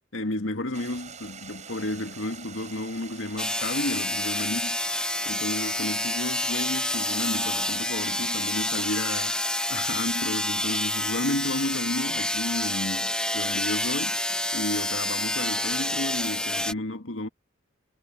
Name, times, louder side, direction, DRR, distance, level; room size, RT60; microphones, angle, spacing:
voice 1, 0.1-4.8 5.3-9.3 9.7-14.2 14.5-17.3, left 1 dB, 85° left, 1.9 m, -32 dB
Stream, 0.7-9.0, right 6 dB, 35° right, 5.7 m, -45 dB
sound 1, 3.4-16.7, left 1 dB, 5° left, 0.9 m, -28 dB
head